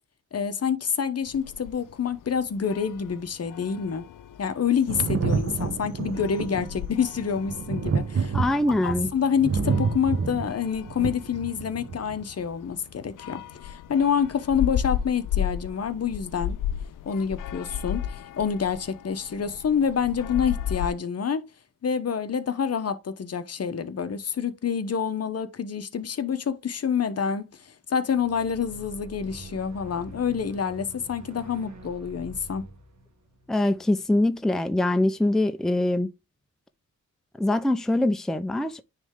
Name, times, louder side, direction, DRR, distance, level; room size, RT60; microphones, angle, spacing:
voice 1, 0.3-4.0 4.4-8.4 8.8-16.6 17.1-21.4 21.8-32.6, left 7 dB, 50° left, 1.0 m, -27 dB
sound 1, 1.2-20.9, left 10 dB, 85° left, 0.6 m, -35 dB
Thunder, 4.9-12.2 13.3-13.4, right 5 dB, 45° right, 0.9 m, -29 dB
voice 2, 8.3-9.1 33.5-36.1 37.4-38.8, left 1 dB, ahead, 0.6 m, -23 dB
sound 2, 28.1-34.4, right 1 dB, 65° right, 1.6 m, -45 dB
9.7 x 3.3 x 3.7 m
cardioid pair, 95°, 31 cm